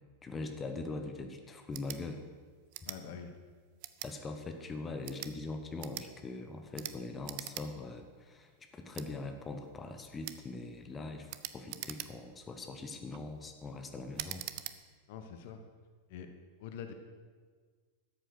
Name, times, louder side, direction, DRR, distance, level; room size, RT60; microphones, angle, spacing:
voice 1, 0.2-2.2 4.0-14.4, left 3 dB, 20° left, 6 dB, 1.1 m, -42 dB
sound 1, 1.7-2.0 2.7-3.0 3.8-4.1 4.9-5.3 5.8-6.1 6.7-7.0 7.2-7.7 8.0-8.1 8.9-9.1 10.2-10.4 11.3-12.4 12.9-13.2 14.1-14.8, right 15 dB, 45° right, 0.6 m, -43 dB
voice 2, 2.8-3.4 15.1-15.6 16.1-16.3 16.6-16.9, left 7 dB, 50° left, 7 dB, 1.1 m, -45 dB
12.5 x 8.1 x 6.5 m, 1.6 s
figure-of-eight pair, 90°, 0 cm